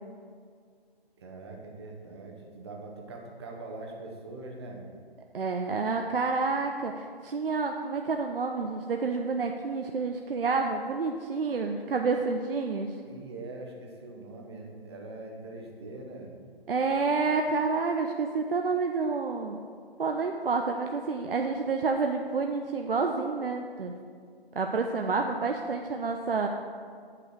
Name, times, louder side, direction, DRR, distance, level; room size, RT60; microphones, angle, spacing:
voice 1, 1.2-4.9 13.1-16.3, right 2 dB, 25° right, 1 dB, 1.0 m, -42 dB
voice 2, 5.3-12.9 16.7-19.6 20.0-23.9 24.6-26.5, right 4 dB, 65° right, 3 dB, 0.6 m, -29 dB
8.4 x 4.9 x 6.4 m, 2.1 s
figure-of-eight pair, 150°, 30 cm